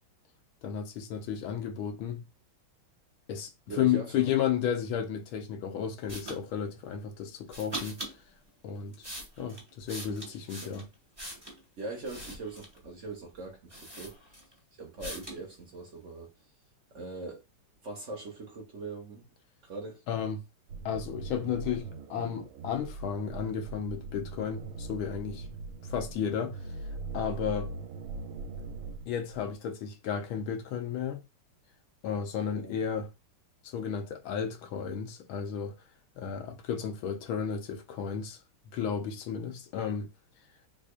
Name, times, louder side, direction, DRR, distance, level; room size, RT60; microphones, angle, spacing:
voice 1, 0.6-2.3 3.3-8.0 8.6-9.1 9.4-10.9 20.1-20.4 20.8-25.5 25.8-26.6 27.1-27.7 29.1-31.2 32.0-33.1 33.6-35.8 36.2-38.4 38.7-40.1, left 8 dB, 75° left, 1.5 m, -33 dB
voice 2, 3.7-4.3 10.0-10.7 11.8-14.2 14.8-16.3 16.9-17.4 17.8-19.2 19.6-20.0 32.6-32.8, right 3 dB, 55° right, 0.8 m, -41 dB
sound 1, 6.1-6.4 7.5-8.2 8.8-11.6 12.0-12.8 13.4-13.5 13.7-14.6 15.0-15.4, right 1 dB, 10° right, 1.5 m, -42 dB
sound 2, 20.7-29.5, right 3 dB, 75° right, 1.3 m, -41 dB
3.6 x 3.3 x 2.4 m
omnidirectional pair, 2.4 m